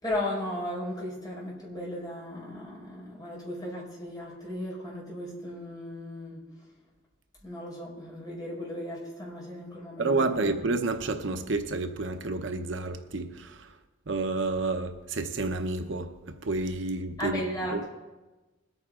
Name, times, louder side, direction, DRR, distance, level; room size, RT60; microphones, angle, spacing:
voice 1, 0.0-6.4 7.4-10.4 17.2-17.8, left 1 dB, 20° left, 5.0 m, -36 dB
voice 2, 10.0-13.7 14.1-17.4 17.7-17.8, right 3 dB, 70° right, 0.8 m, -30 dB
21.5 x 9.3 x 3.8 m
head